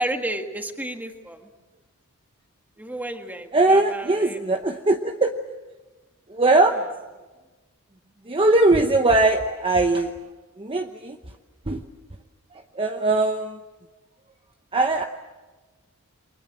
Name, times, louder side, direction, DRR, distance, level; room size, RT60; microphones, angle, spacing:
voice 1, 0.0-1.5 2.8-4.4, right 1 dB, 10° right, 5 dB, 1.7 m, -31 dB
voice 2, 3.5-5.3 6.3-6.8 8.3-10.1 10.6-11.2 11.7-11.8 12.8-13.6 14.7-15.1, right 2 dB, 25° right, 5 dB, 0.9 m, -20 dB
29.0 x 23.5 x 7.5 m, 1.2 s
head